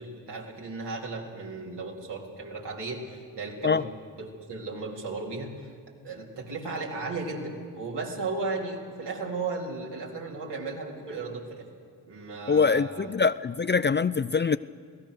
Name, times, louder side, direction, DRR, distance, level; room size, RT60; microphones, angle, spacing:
voice 1, 0.0-3.9 4.2-5.5 6.0-11.7 12.1-13.1, right 3 dB, 65° right, 4.0 m, -35 dB
voice 2, 12.5-14.6, left 5 dB, 25° left, 0.5 m, -23 dB
27.0 x 17.0 x 6.6 m
supercardioid pair, 40°, 43 cm